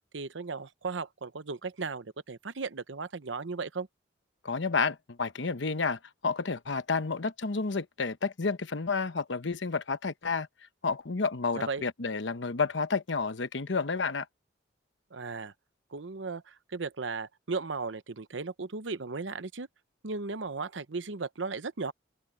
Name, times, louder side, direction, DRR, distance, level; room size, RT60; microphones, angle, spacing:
voice 1, 0.1-3.9 11.5-11.8 15.1-15.5 15.9-19.7 20.0-21.9, right 4 dB, 80° right, 0.9 m, -36 dB
voice 2, 4.4-10.5 10.8-14.3, left 4 dB, 75° left, 1.0 m, -30 dB
open air
head